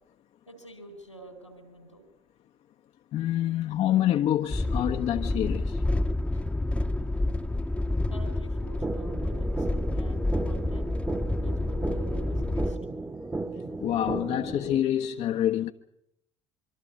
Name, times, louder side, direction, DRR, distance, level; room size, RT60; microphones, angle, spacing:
voice 1, 0.5-2.1 6.3-6.4 8.1-10.9 11.4-12.8, right 2 dB, 90° left, 4.6 m, -48 dB
voice 2, 3.1-5.8 13.8-15.7, left 11 dB, 45° left, 1.1 m, -26 dB
sound 1, 4.5-12.8, left 2 dB, 10° left, 1.2 m, -29 dB
sound 2, 8.8-14.8, right 3 dB, 15° right, 1.4 m, -35 dB
25.0 x 25.0 x 5.2 m
figure-of-eight pair, 55°, 15 cm